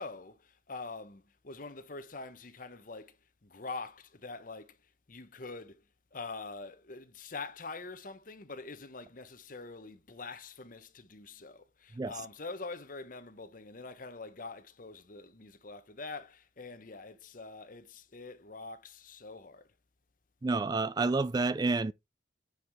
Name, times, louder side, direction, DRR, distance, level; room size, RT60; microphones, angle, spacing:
voice 1, 0.0-3.2 3.4-4.8 5.1-5.8 6.1-19.7, left 3 dB, 45° left, 1.0 m, -44 dB
voice 2, 20.4-21.9, right 3 dB, 20° right, 0.3 m, -29 dB
9.4 x 4.8 x 3.5 m
head